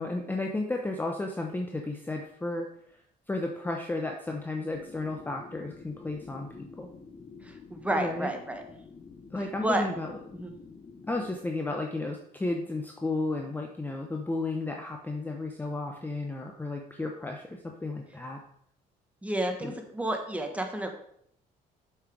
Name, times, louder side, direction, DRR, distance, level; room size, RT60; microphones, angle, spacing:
voice 1, 0.0-2.7 3.3-6.9 7.9-8.3 9.3-10.1 11.1-18.4 19.6-19.7, left 2 dB, 10° left, 2 dB, 0.8 m, -33 dB
sound 1, 4.7-11.4, left 4 dB, 30° left, 1.1 m, -49 dB
voice 2, 7.4-8.6 9.6-9.9 10.3-10.5 19.2-20.9, right 1 dB, 10° right, 4 dB, 1.4 m, -30 dB
7.6 x 5.6 x 4.7 m, 0.69 s
cardioid pair, 110°, 17 cm